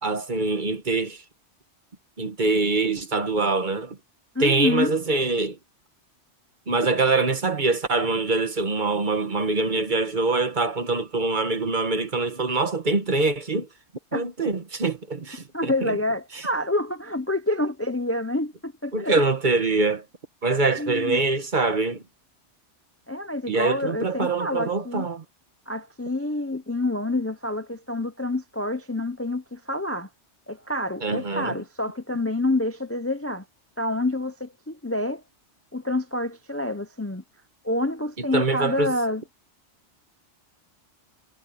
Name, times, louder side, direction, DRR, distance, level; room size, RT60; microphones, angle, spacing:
voice 1, 0.0-1.2 2.2-4.0 4.4-5.6 6.7-13.7 14.1-16.0 18.9-20.0 20.4-22.0 23.5-25.2 31.0-31.6 38.2-38.9, right 3 dB, 45° right, 1.3 m, -24 dB
voice 2, 4.3-4.9 14.1-14.2 15.5-19.2 20.8-21.2 23.1-25.1 25.7-30.1 30.5-33.4 33.8-35.2 35.7-37.2 37.6-39.2, left 2 dB, 15° left, 0.6 m, -27 dB
omnidirectional pair, 1.2 m